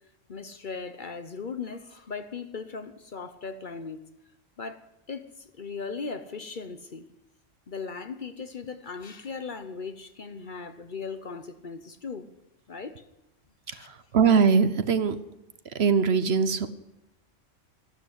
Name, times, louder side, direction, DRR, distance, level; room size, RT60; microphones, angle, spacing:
voice 1, 0.3-4.0 4.6-7.0 7.7-12.3 12.7-13.0 13.7-13.9, left 5 dB, 45° left, 0.9 m, -38 dB
voice 2, 14.1-15.2 15.8-16.7, right 6 dB, 60° right, 1.1 m, -21 dB
13.5 x 12.5 x 8.0 m
omnidirectional pair, 1.3 m